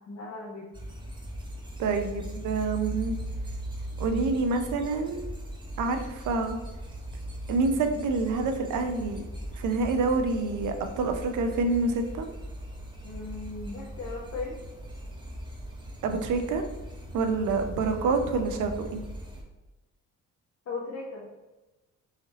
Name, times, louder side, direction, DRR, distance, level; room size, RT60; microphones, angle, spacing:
voice 1, 0.1-0.7 13.0-14.5 20.7-21.3, left 3 dB, 60° left, -5 dB, 0.9 m, -37 dB
sound 1, 0.7-19.4, equal, 15° right, 1.2 m, -39 dB
voice 2, 1.8-3.1 4.0-5.3 5.8-6.6 7.5-9.2 9.6-12.3 16.0-16.6 17.1-19.0, right 3 dB, 80° right, 6 dB, 0.7 m, -27 dB
4.2 x 2.7 x 4.0 m, 1.1 s
cardioid pair, 90°, 30 cm